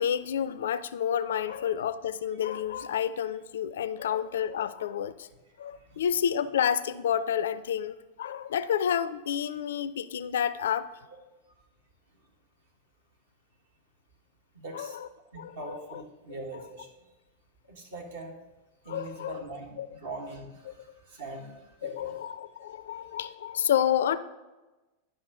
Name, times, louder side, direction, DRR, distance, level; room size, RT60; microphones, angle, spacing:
voice 1, 0.0-5.3 5.6-10.9 14.7-15.1 15.4-16.0 18.9-19.4 19.8-19.9 20.7-20.8 21.8-24.2, left 9 dB, 60° left, 0.3 m, -30 dB
voice 2, 14.5-15.0 15.3-16.9 17.7-18.3 18.8-22.2, right 2 dB, 60° right, 1.6 m, -42 dB
10.5 x 5.8 x 3.7 m
figure-of-eight pair, 90°, 0 cm